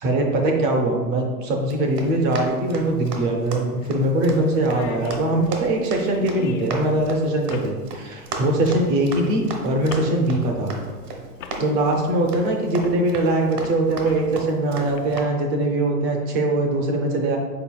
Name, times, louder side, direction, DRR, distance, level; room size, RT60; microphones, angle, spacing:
voice 1, 0.0-10.8 11.6-17.4, right 1 dB, 25° right, 2 dB, 0.5 m, -22 dB
sound 1, 0.9-1.0 2.7-2.8 3.2-3.3 3.8-4.0 4.3-4.4 4.6-6.8 7.5-7.7 8.6-8.9 9.9-10.1 10.9-11.0 11.4-11.6 12.8-13.0 13.4-14.4 15.0-15.2, left 5 dB, 55° left, 0.6 m, -38 dB
Run, 1.6-15.2, right 3 dB, 85° right, 1.2 m, -36 dB
5.7 x 4.1 x 2.2 m, 1.4 s
hypercardioid pair, 125°, 46 cm